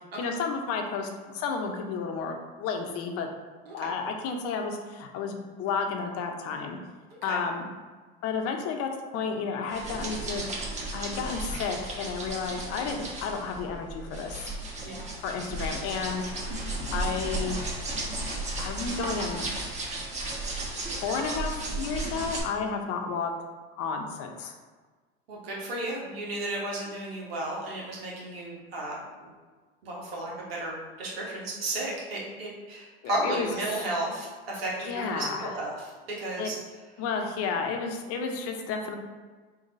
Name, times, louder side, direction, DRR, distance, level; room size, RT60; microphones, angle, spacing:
voice 1, 0.2-3.3 3.7-6.8 7.2-7.7 8.2-10.4 10.9-14.5 15.1-16.2 16.9-17.6 18.6-19.5 21.0-23.3 23.8-24.5 33.0-33.5 34.8-35.6 36.4-36.5 37.0-39.0, left 5 dB, 55° left, 3 dB, 0.8 m, -32 dB
voice 2, 7.1-7.4 14.8-15.1 25.3-28.9 29.8-35.9 36.2-36.5, right 1 dB, 90° right, -4 dB, 1.4 m, -33 dB
sound 1, 9.7-22.4, right 2 dB, 25° right, 1.2 m, -34 dB
4.0 x 2.9 x 4.0 m, 1.4 s
hypercardioid pair, 95°, 29 cm